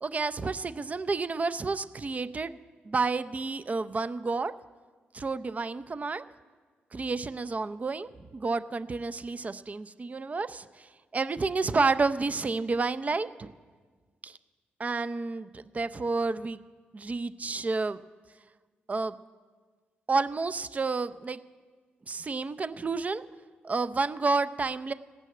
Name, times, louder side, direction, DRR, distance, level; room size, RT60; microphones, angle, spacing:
voice 1, 0.0-2.6 2.8-4.5 5.1-6.2 6.9-10.9 11.1-13.5 14.2-14.4 14.8-16.6 16.9-18.0 18.9-19.1 20.1-21.4 22.1-23.2 23.6-24.9, right 4 dB, 40° right, 12 dB, 0.5 m, -30 dB
16.0 x 6.2 x 8.6 m, 1.5 s
cardioid pair, 55°, 4 cm